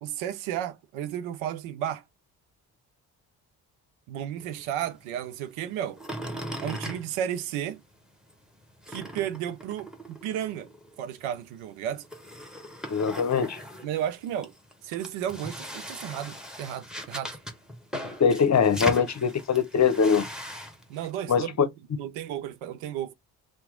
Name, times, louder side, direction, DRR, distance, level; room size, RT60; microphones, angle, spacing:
voice 1, 0.0-2.0 4.1-6.0 6.6-7.8 8.9-10.7 11.0-12.0 13.8-14.5 14.8-17.4 20.9-23.1, right 10 dB, 80° right, 0.6 m, -33 dB
sound 1, 4.4-7.9 8.2-21.1, equal, ahead, 1.0 m, -39 dB
voice 2, 12.9-13.6 18.2-20.3 21.3-21.4, left 6 dB, 35° left, 0.7 m, -22 dB
2.9 x 2.3 x 3.6 m
hypercardioid pair, 40°, 48 cm